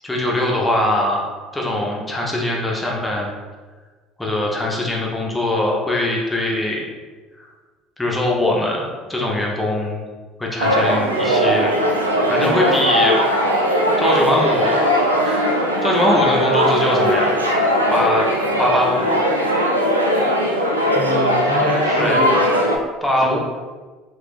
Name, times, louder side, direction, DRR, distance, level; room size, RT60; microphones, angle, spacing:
voice 1, 0.0-1.2 1.5-3.3 4.2-6.9 7.4-7.5 8.0-10.0 10.4-11.7 12.3-13.2 14.0-14.8 15.2-17.4 17.9-18.3 18.6-19.2 22.0-22.2 23.0-23.4, left 1 dB, 10° left, -2 dB, 0.8 m, -21 dB
sound 1, 10.6-22.8, equal, 90° right, 0.3 m, -19 dB
voice 2, 20.9-22.4 23.2-23.4, right 1 dB, 25° right, -1 dB, 0.5 m, -26 dB
3.6 x 3.0 x 2.4 m, 1.4 s
figure-of-eight pair, 60°, 0 cm